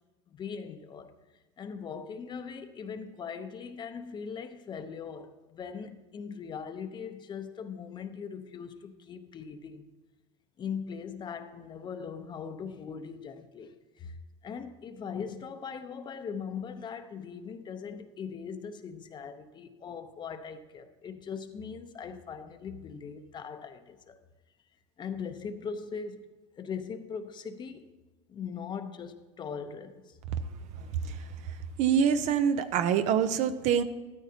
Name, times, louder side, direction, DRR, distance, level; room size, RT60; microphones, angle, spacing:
voice 1, 0.3-1.1 1.6-9.9 10.6-14.2 14.4-24.2 25.0-26.2 26.6-27.9 28.3-30.2, left 6 dB, 30° left, 0.9 m, -40 dB
voice 2, 31.8-33.8, right 8 dB, 50° right, 0.7 m, -25 dB
13.0 x 12.5 x 2.9 m
supercardioid pair, 115°, 16 cm